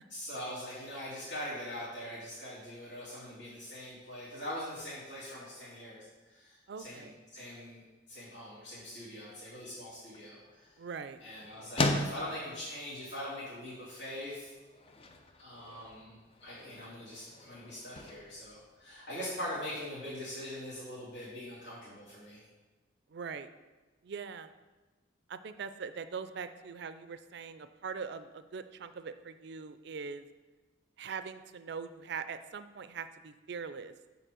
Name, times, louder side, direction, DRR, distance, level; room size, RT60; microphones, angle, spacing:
voice 1, 0.1-7.8 8.1-10.7 11.2-14.5 15.4-22.4, left 1 dB, 70° left, -11 dB, 2.5 m, -42 dB
voice 2, 6.7-7.2 10.8-11.2 23.1-23.5 24.0-24.5 25.3-30.3 31.0-33.9, right 5 dB, 60° right, 11 dB, 0.4 m, -42 dB
sound 1, 9.7-19.5, left 2 dB, 30° left, 0.5 m, -40 dB
6.7 x 4.2 x 6.1 m, 1.2 s
head